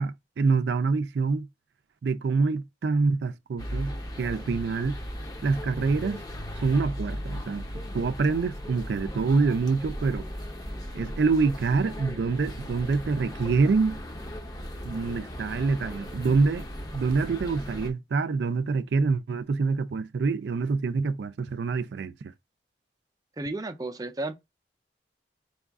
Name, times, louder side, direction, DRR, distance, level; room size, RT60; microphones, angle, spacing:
voice 1, 0.0-1.5 2.0-5.0 5.4-6.2 6.6-10.2 10.9-14.0 14.8-16.7 16.9-22.1, right 4 dB, 80° right, 0.4 m, -26 dB
Barbican - Evening Standard seller with radio by station, 3.6-17.9, equal, 20° left, 0.7 m, -37 dB
voice 2, 23.4-24.3, right 2 dB, 20° right, 0.5 m, -33 dB
4.6 x 2.4 x 3.4 m
head